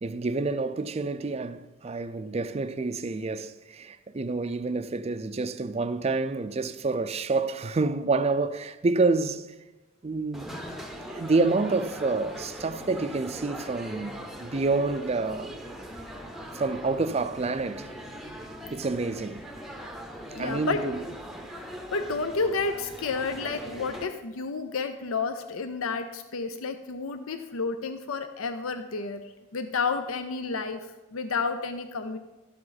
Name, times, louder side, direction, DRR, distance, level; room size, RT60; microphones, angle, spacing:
voice 1, 0.0-9.5 10.0-10.5 11.1-15.5 16.5-17.9 18.7-19.4 20.4-21.0, right 3 dB, 30° right, 0.4 m, -28 dB
sound 1, 10.3-24.1, equal, ahead, 0.7 m, -41 dB
voice 2, 20.3-20.8 21.5-29.2 29.5-32.2, left 4 dB, 80° left, 0.6 m, -31 dB
12.5 x 7.7 x 4.0 m
head